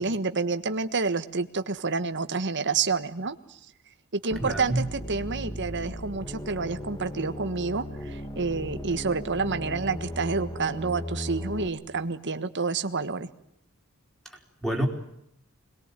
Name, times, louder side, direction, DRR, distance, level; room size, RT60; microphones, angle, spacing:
voice 1, 0.0-3.6 4.1-13.3, right 4 dB, 55° right, 9 dB, 1.5 m, -29 dB
sound 1, 4.3-11.7, equal, 20° left, 2.8 m, -37 dB
voice 2, 4.4-4.8 14.2-14.9, right 1 dB, ahead, 2 dB, 4.6 m, -28 dB
26.0 x 21.5 x 9.1 m, 0.76 s
head